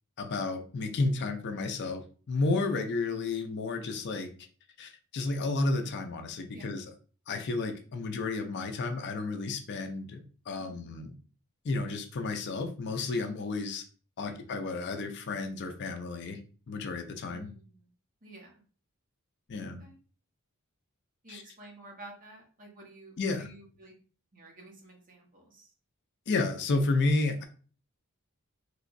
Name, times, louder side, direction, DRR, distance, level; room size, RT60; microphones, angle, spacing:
voice 1, 0.2-2.0 2.3-4.3 4.8-6.9 7.3-11.1 11.6-13.8 14.2-16.4 16.7-17.5 19.5-19.8 21.3-21.4 23.2-23.5 26.3-27.4, left 3 dB, 50° left, 6 dB, 0.4 m, -31 dB
voice 2, 17.3-17.9 18.2-18.6 19.6-20.0 21.2-23.9 24.3-25.7, right 2 dB, 40° right, 0 dB, 1.0 m, -51 dB
3.3 x 2.9 x 2.6 m, 0.40 s
head